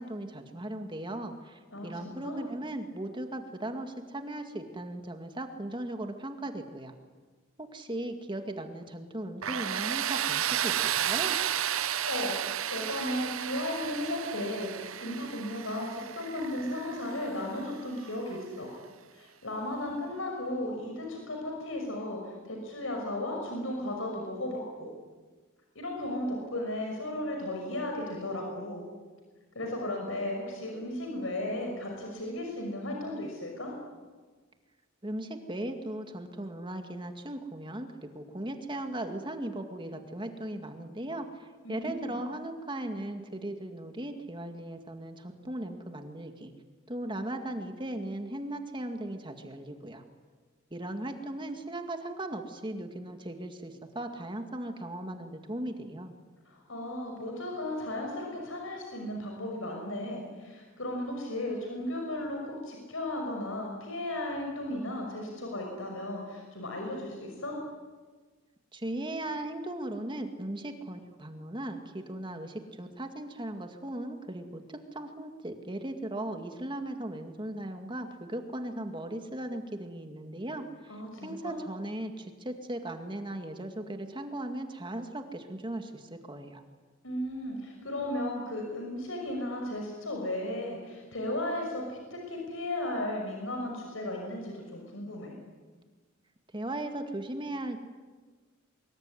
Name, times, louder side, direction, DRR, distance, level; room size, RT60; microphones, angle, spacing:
voice 1, 0.0-6.9 7.6-11.4 35.0-46.5 46.9-50.0 50.7-56.1 68.7-86.6 96.5-97.8, right 1 dB, 25° right, 6 dB, 2.1 m, -38 dB
voice 2, 1.7-2.4 11.8-12.4 12.7-18.7 19.1-24.9 25.7-28.8 29.5-33.7 41.6-42.1 56.5-67.6 80.9-81.6 87.0-95.3, left 1 dB, 75° left, 1 dB, 6.0 m, -35 dB
Tools, 9.4-18.2, right 10 dB, 85° right, 0.8 m, -33 dB
25.0 x 22.0 x 9.9 m, 1.4 s
head